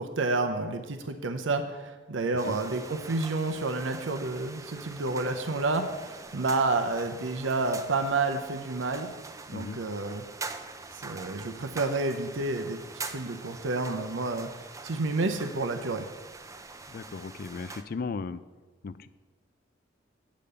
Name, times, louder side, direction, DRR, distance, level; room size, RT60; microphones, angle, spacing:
voice 1, 0.0-9.1 9.5-10.2 10.9-12.8 13.0-14.5 14.8-16.1, right 3 dB, 85° right, 6 dB, 0.7 m, -30 dB
sound 1, 2.4-17.8, right 3 dB, 15° right, 0.4 m, -44 dB
voice 2, 16.9-18.4 18.8-19.1, left 4 dB, 50° left, 15 dB, 0.4 m, -36 dB
8.5 x 5.1 x 6.7 m, 1.3 s
head